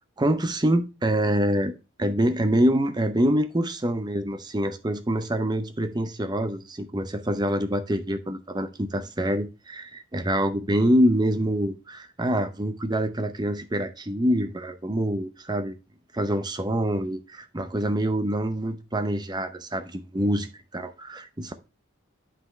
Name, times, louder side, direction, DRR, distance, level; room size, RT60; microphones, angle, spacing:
voice 1, 0.2-1.7 2.0-15.8 16.1-21.5, equal, 20° right, 0.7 m, -25 dB
7.6 x 5.9 x 3.2 m
head